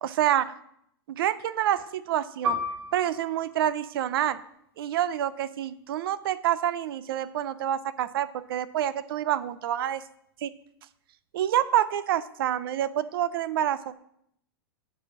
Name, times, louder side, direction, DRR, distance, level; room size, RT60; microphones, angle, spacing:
voice 1, 0.0-0.5 1.1-2.6 2.9-4.4 4.8-10.0 10.4-10.5 11.3-14.0, right 11 dB, 65° right, 16 dB, 0.5 m, -27 dB
Piano, 2.4-7.5 7.8-8.0 8.8-9.1, right 1 dB, 85° right, 1.6 m, -36 dB
8.4 x 4.9 x 6.1 m, 0.73 s
supercardioid pair, 160°, 13 cm